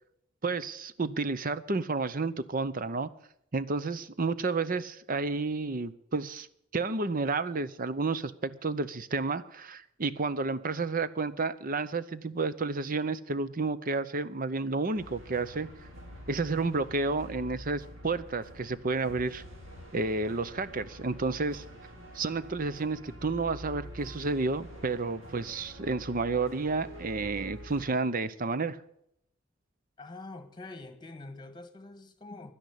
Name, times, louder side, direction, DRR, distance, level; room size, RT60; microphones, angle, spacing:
voice 1, 0.4-3.1 3.5-6.5 6.7-15.7 16.3-19.4 19.9-21.6 22.1-28.8, right 3 dB, 45° right, 0.7 m, -31 dB
sound 1, 14.9-27.9, equal, 80° right, 4.8 m, -47 dB
voice 2, 30.0-32.5, left 2 dB, 20° left, 1.5 m, -45 dB
11.5 x 10.5 x 8.3 m
head